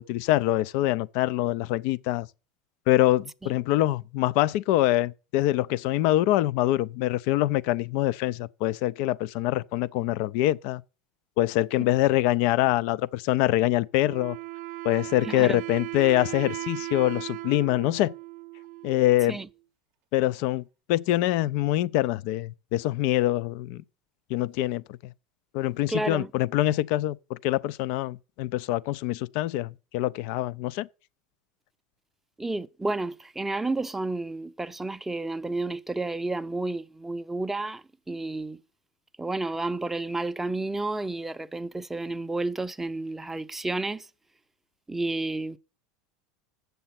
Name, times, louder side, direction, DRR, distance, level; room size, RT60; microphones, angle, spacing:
voice 1, 0.0-2.3 2.9-10.8 11.4-14.4 14.8-18.1 18.8-19.4 20.1-20.6 20.9-23.8 24.3-25.0 25.5-30.9, left 15 dB, 65° left, 0.4 m, -25 dB
Wind instrument woodwind instrument, 14.0-19.5, right 22 dB, 60° right, 0.6 m, -37 dB
voice 2, 15.2-15.6 19.3-19.5 25.9-26.3 32.4-38.6 39.2-44.1 44.9-45.6, right 2 dB, 10° right, 0.5 m, -31 dB
7.5 x 6.8 x 5.8 m
hypercardioid pair, 95°, 3 cm